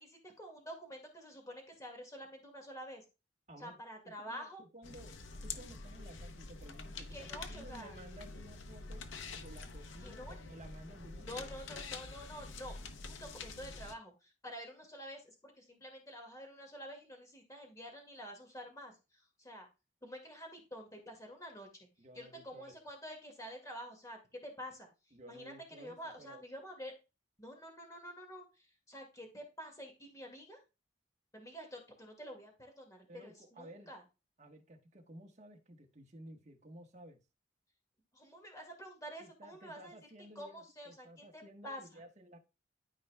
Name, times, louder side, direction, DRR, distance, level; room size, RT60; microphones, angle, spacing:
voice 1, 0.0-3.0 3.6-4.6 7.1-7.9 10.0-10.3 11.2-12.8 13.0-19.7 20.0-21.7 22.1-24.9 25.3-26.9 27.4-30.6 31.3-34.0 38.1-40.0 40.4-41.1 41.3-42.0, equal, 20° left, 2 dB, 2.0 m, -48 dB
voice 2, 3.5-3.8 4.3-9.0 9.3-11.5 22.0-22.8 25.1-26.4 33.1-33.9 34.4-37.2 39.2-42.4, right 1 dB, 35° right, 2 dB, 1.3 m, -54 dB
sound 1, 4.8-13.9, left 4 dB, 85° left, 0.8 m, -47 dB
13.0 x 4.6 x 2.3 m, 0.28 s
head